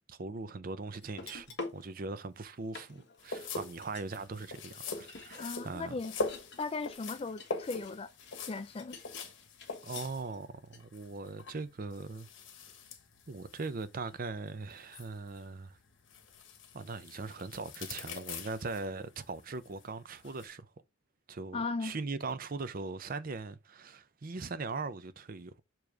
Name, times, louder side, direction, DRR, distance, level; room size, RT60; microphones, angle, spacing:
voice 1, 0.0-1.5 1.7-5.9 9.8-12.3 13.3-15.8 16.7-20.7 21.3-25.5, right 3 dB, 45° right, 0.6 m, -40 dB
sound 1, 1.0-1.8 2.4-2.5 2.7-10.4 10.7-10.8, left 3 dB, 60° left, 1.4 m, -49 dB
sound 2, 3.2-20.5, left 3 dB, 80° left, 1.4 m, -44 dB
voice 2, 5.4-6.1 6.6-8.1 8.5-9.0 21.5-22.0, left 3 dB, 30° left, 0.4 m, -37 dB
7.0 x 3.1 x 4.8 m
head